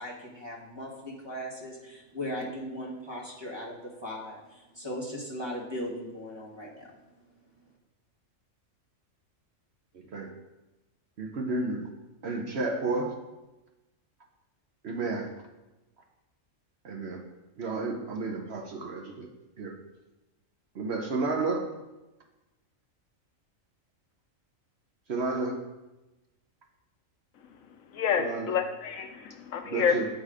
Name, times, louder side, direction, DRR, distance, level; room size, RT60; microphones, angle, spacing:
voice 1, 0.0-6.9, equal, 20° right, -4 dB, 1.5 m, -38 dB
voice 2, 11.2-11.8 12.2-13.1 14.8-15.3 16.8-17.2 17.6-19.3 19.6-19.7 20.7-21.7 25.1-25.6 28.2-28.5 29.6-30.1, right 3 dB, 55° right, 2 dB, 1.0 m, -31 dB
voice 3, 27.9-30.0, left 7 dB, 75° left, 5 dB, 1.1 m, -28 dB
8.5 x 4.1 x 4.9 m, 1.0 s
omnidirectional pair, 1.4 m